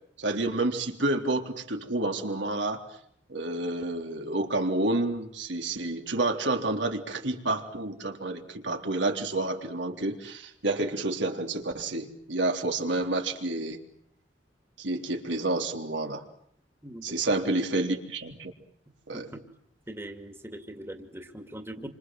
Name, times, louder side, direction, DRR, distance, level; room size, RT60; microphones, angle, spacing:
voice 1, 0.2-2.8 3.3-13.8 14.8-16.2 17.0-18.5 19.1-19.3, right 2 dB, 85° right, 3 dB, 3.6 m, -29 dB
voice 2, 16.8-17.4 19.1-19.5 19.9-21.9, right 1 dB, 15° right, 5 dB, 2.3 m, -41 dB
28.5 x 26.0 x 7.8 m, 0.70 s
head